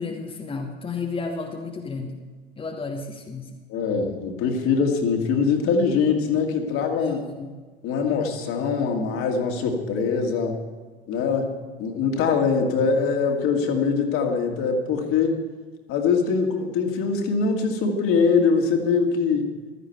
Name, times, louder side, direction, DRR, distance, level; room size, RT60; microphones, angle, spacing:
voice 1, 0.0-2.2 2.6-3.6 7.0-7.5, left 4 dB, 15° left, 1 dB, 1.4 m, -32 dB
voice 2, 3.7-7.2 7.8-10.6 11.1-11.5 11.8-15.4 15.9-19.5, left 5 dB, 45° left, 3 dB, 2.4 m, -23 dB
15.5 x 13.0 x 4.7 m, 1.4 s
figure-of-eight pair, 80°, 31 cm